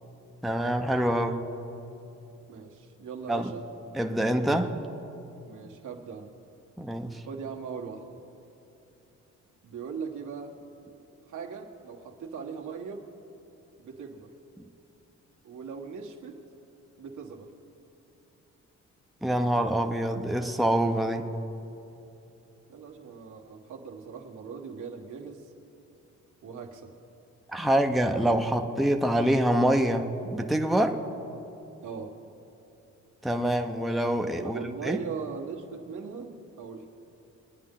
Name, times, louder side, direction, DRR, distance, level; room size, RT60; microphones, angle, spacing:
voice 1, 0.4-1.4 3.3-3.5 3.9-4.7 6.8-7.2 19.2-21.3 27.5-30.0 30.3-31.0 33.2-35.0, right 1 dB, ahead, 4 dB, 0.7 m, -25 dB
voice 2, 2.5-3.7 5.4-6.3 7.2-8.2 9.6-10.6 11.3-13.0 13.8-14.3 15.4-16.4 17.0-17.5 22.7-25.5 26.4-26.9 31.8-32.1 34.4-36.9, right 6 dB, 80° right, 0 dB, 1.5 m, -39 dB
22.5 x 9.7 x 3.8 m, 2.9 s
cardioid pair, 85°, 30 cm